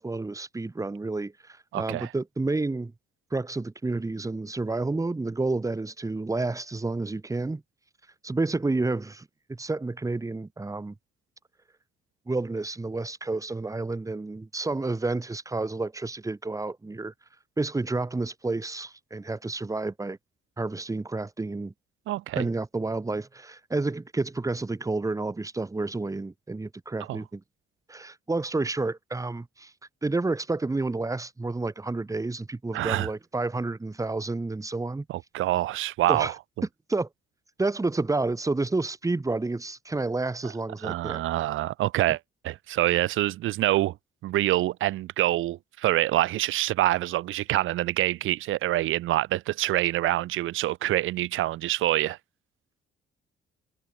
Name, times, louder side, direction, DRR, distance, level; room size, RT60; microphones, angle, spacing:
voice 1, 0.0-2.9 3.3-7.6 8.2-10.9 12.3-17.1 17.6-20.2 20.6-21.7 22.3-27.4 27.9-29.7 30.0-35.0 36.1-36.3 36.9-37.1 37.6-41.2, right 3 dB, 15° right, 1.7 m, -30 dB
voice 2, 1.7-2.1 22.1-22.5 27.1-27.2 32.7-33.1 35.1-36.3 40.4-40.5 40.8-42.2 42.4-43.9 44.2-52.2, right 15 dB, 85° right, 3.0 m, -26 dB
cardioid pair, 90°, 20 cm